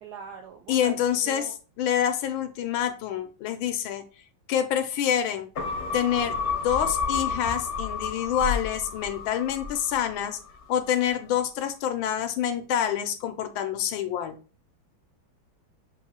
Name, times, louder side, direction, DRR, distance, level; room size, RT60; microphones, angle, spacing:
voice 1, 0.0-1.5, right 4 dB, 75° right, 3 dB, 0.9 m, -40 dB
voice 2, 0.7-1.5 1.8-4.0 4.5-5.5 5.9-10.4 10.7-14.4, left 9 dB, 75° left, 8 dB, 1.3 m, -27 dB
sound 1, 5.6-10.2 10.6-10.7, left 5 dB, 50° left, 0.9 m, -30 dB
7.1 x 2.7 x 2.8 m, 0.37 s
omnidirectional pair, 2.2 m